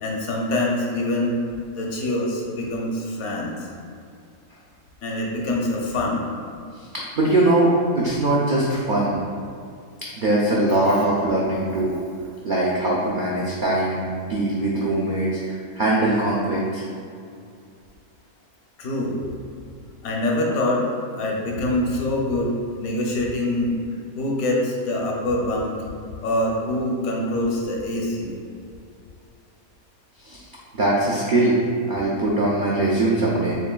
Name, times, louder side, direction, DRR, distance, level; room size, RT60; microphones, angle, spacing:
voice 1, 0.0-1.4 1.7-3.5 5.0-6.2 18.8-19.2 20.0-20.8 21.2-23.8 24.2-25.7 26.2-28.3, left 1 dB, 75° left, -1 dB, 1.1 m, -24 dB
voice 2, 6.9-9.2 10.2-11.9 12.4-16.8 30.2-30.4 30.7-31.6 31.9-33.6, right 2 dB, 90° right, -5 dB, 0.4 m, -21 dB
6.6 x 2.4 x 2.2 m, 2.4 s
omnidirectional pair, 1.5 m